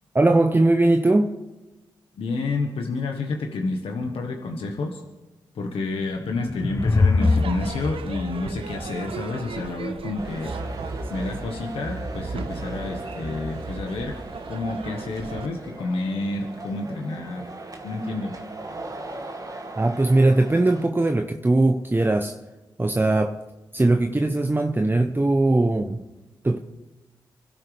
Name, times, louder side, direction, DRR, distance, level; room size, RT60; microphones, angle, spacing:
voice 1, 0.1-1.4 19.8-22.4 22.8-23.4 23.7-26.0 26.4-26.6, right 2 dB, 20° right, 0.9 m, -20 dB
voice 2, 2.1-5.0 5.5-10.8 11.1-14.1 14.5-17.5 17.8-18.3, left 3 dB, 80° left, 1.4 m, -29 dB
sound 1, 6.2-9.5, left 3 dB, 30° left, 0.6 m, -24 dB
Crowd / Fireworks, 7.2-15.5, right 6 dB, 70° right, 0.8 m, -38 dB
sound 2, 10.2-20.9, right 2 dB, 40° right, 2.0 m, -36 dB
25.0 x 12.5 x 3.5 m
supercardioid pair, 45°, 9 cm